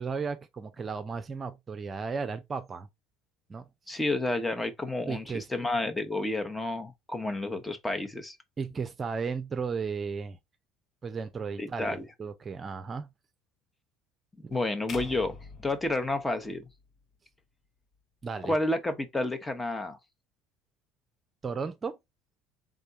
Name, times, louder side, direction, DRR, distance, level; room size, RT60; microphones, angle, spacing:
voice 1, 0.0-2.9 3.5-3.7 5.1-5.5 8.6-10.4 11.0-13.1 18.2-18.5 21.4-22.0, right 5 dB, 35° right, 0.6 m, -34 dB
voice 2, 3.9-8.4 11.6-12.1 14.5-15.4 15.6-16.7 18.4-20.0, left 2 dB, 15° left, 1.1 m, -30 dB
sound 1, 14.9-17.1, left 5 dB, 45° left, 0.8 m, -44 dB
3.8 x 3.4 x 4.1 m
hypercardioid pair, 70°, 0 cm